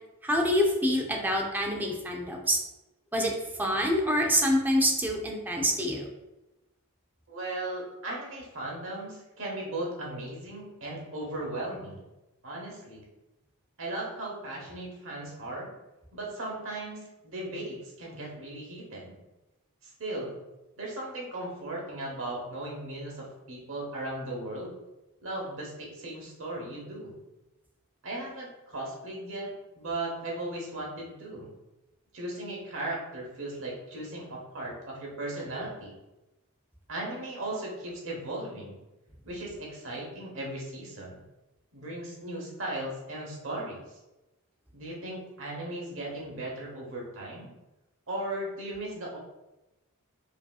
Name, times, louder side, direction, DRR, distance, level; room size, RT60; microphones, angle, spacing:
voice 1, 0.2-2.6 3.1-3.3 3.6-6.1, equal, 10° right, 0 dB, 0.5 m, -26 dB
voice 2, 7.3-12.0 12.4-13.0 13.8-15.7 16.1-19.2 19.8-20.4 20.8-24.7 25.2-27.2 28.0-29.5 29.7-31.5 32.1-36.0 36.9-38.8 39.2-41.2 41.7-44.0 44.7-47.5 48.1-49.2, right 1 dB, 65° right, -3 dB, 1.1 m, -37 dB
4.8 x 2.7 x 2.4 m, 0.99 s
head